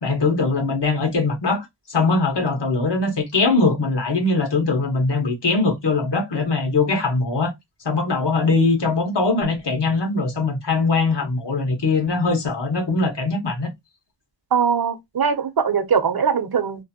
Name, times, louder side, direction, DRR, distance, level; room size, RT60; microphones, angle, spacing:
voice 1, 0.0-7.5 7.8-13.7, left 3 dB, 65° left, 1.3 m, -21 dB
voice 2, 14.5-16.8, right 6 dB, 55° right, 0.7 m, -21 dB
2.9 x 2.5 x 2.8 m
wide cardioid pair, 95°, 45 cm